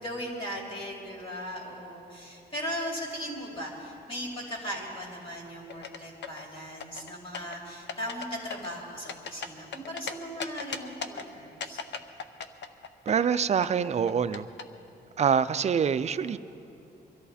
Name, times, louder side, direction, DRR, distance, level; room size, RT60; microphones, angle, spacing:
voice 1, 0.0-11.8, equal, 30° left, -3 dB, 3.2 m, -38 dB
sound 1, 5.7-6.4 6.8-7.6 7.9-8.3 8.5-10.1 10.4-11.2 11.6-14.6, left 6 dB, 85° left, 0.7 m, -36 dB
voice 2, 13.1-14.5 15.2-16.4, right 7 dB, 40° right, 13 dB, 0.4 m, -25 dB
23.0 x 14.0 x 4.2 m, 2.8 s
wide cardioid pair, 170°, 18 cm